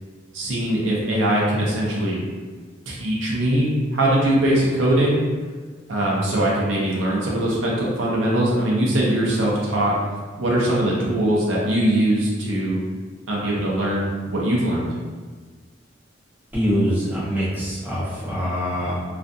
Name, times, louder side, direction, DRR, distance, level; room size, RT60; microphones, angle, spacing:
voice 1, 0.3-2.2 2.9-5.2 5.9-10.0 10.4-12.8 13.3-14.9, right 1 dB, 85° right, -5 dB, 0.6 m, -21 dB
voice 2, 16.5-19.0, equal, 10° right, -8 dB, 0.7 m, -24 dB
2.4 x 2.2 x 2.6 m, 1.4 s
head